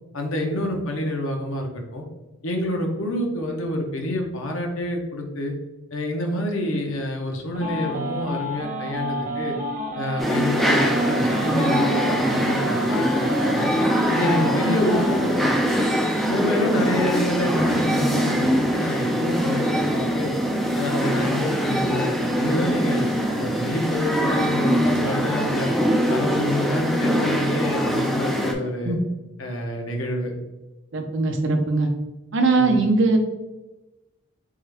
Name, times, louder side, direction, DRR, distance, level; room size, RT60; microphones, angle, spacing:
voice 1, 0.1-2.0 2.4-5.5 5.9-9.6 9.9-13.7 14.1-15.5 15.8-15.9 16.3-20.3 20.8-23.1 23.3-25.7 26.1-29.0 29.4-30.3 32.5-32.8, left 1 dB, 70° left, 2 dB, 0.7 m, -27 dB
sound 1, 7.5-15.5, equal, 35° right, 0.9 m, -30 dB
sound 2, 10.2-28.5, equal, ahead, 0.3 m, -23 dB
voice 2, 30.9-31.9 32.3-33.2, right 3 dB, 55° right, 4 dB, 0.6 m, -20 dB
3.7 x 3.5 x 3.3 m, 1.1 s
head